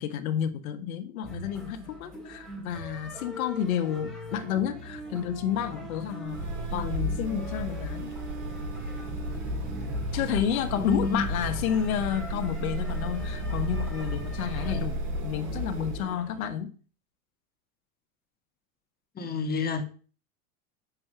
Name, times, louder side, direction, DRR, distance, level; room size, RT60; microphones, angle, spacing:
voice 1, 0.0-6.4 6.7-8.1 10.1-16.7, left 9 dB, 80° left, 1.4 m, -30 dB
sound 1, 1.2-16.5, right 1 dB, ahead, 3.9 m, -41 dB
sound 2, 6.2-16.1, equal, 65° right, 5.4 m, -33 dB
voice 2, 10.7-11.2 19.2-19.8, left 3 dB, 20° left, 2.1 m, -29 dB
7.6 x 6.0 x 7.9 m
supercardioid pair, 120°, 41 cm